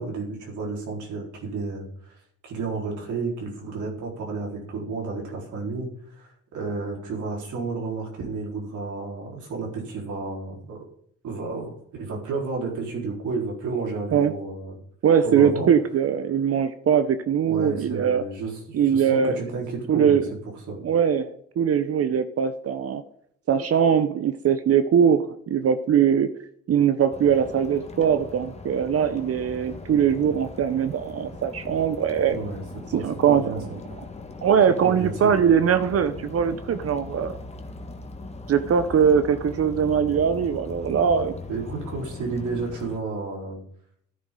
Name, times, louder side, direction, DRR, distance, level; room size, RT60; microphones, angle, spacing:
voice 1, 0.0-1.9 2.4-5.9 6.2-10.8 11.2-14.8 15.2-15.7 17.5-20.2 20.7-20.8 32.3-32.6 32.9-33.8 34.8-35.5 41.5-43.6, right 4 dB, 75° right, -1 dB, 4.2 m, -31 dB
voice 2, 15.0-18.2 18.7-19.4 19.9-20.2 20.8-23.0 23.5-26.3 26.7-32.4 32.9-33.7 34.4-37.4 38.5-41.3, right 7 dB, 50° right, 11 dB, 0.8 m, -21 dB
sound 1, 27.1-43.0, left 3 dB, 20° left, 1.6 m, -40 dB
12.5 x 10.5 x 3.8 m, 0.66 s
cardioid pair, 90°, 30 cm